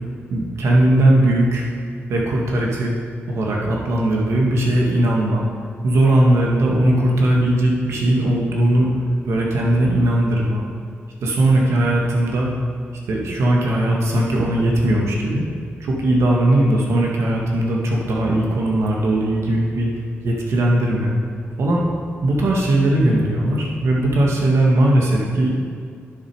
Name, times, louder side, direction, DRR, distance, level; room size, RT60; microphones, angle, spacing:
voice 1, 0.3-1.6 2.1-2.9 3.3-5.4 5.8-8.9 9.3-10.6 11.2-12.5 13.1-15.4 15.8-19.9 20.2-21.1 21.6-21.8 22.2-25.5, right 1 dB, 80° right, -2 dB, 2.0 m, -18 dB
11.0 x 6.8 x 4.8 m, 2.2 s
cardioid pair, 80°, 5 cm